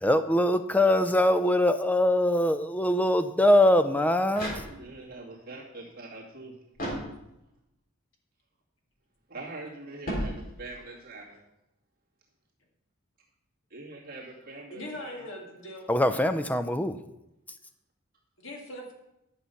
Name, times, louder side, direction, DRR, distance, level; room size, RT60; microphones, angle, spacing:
voice 1, 0.0-4.6 15.9-17.0, left 1 dB, 5° left, 10 dB, 0.5 m, -23 dB
sound 1, 4.3-5.2 6.7-7.6 10.0-11.0, equal, 40° left, 3.5 m, -36 dB
voice 2, 4.3-6.5 9.3-11.4 13.7-15.2, right 2 dB, 45° right, -3 dB, 2.3 m, -43 dB
voice 3, 14.7-15.9 18.4-18.9, left 1 dB, 60° left, 1 dB, 2.2 m, -40 dB
11.0 x 6.7 x 5.7 m, 0.88 s
head